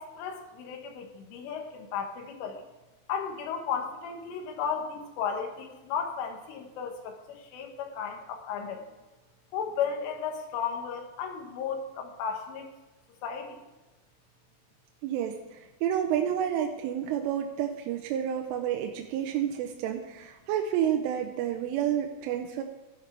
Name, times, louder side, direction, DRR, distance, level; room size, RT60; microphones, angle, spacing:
voice 1, 0.0-2.7 3.1-8.9 9.5-12.7 13.2-13.6, left 7 dB, 80° left, 3 dB, 3.9 m, -34 dB
voice 2, 15.0-22.6, right 10 dB, 85° right, 3 dB, 3.3 m, -30 dB
14.5 x 11.0 x 3.4 m, 1.1 s
omnidirectional pair, 5.6 m